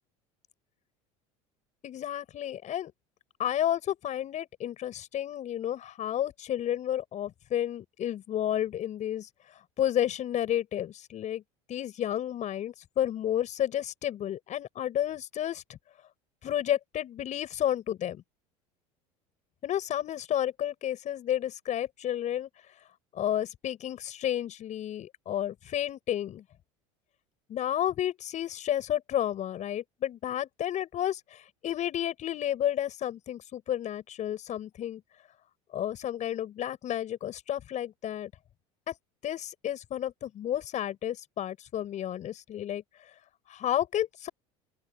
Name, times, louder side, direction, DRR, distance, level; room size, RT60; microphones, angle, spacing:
voice 1, 1.8-2.9 3.4-9.3 9.8-11.4 11.7-15.6 16.4-18.2 19.6-22.5 23.1-26.4 27.5-31.4 31.6-35.0 35.7-38.3 38.9-39.0 39.2-42.8 43.5-44.3, left 11 dB, 45° left, 7.4 m, -31 dB
open air
supercardioid pair, 100°, 17 cm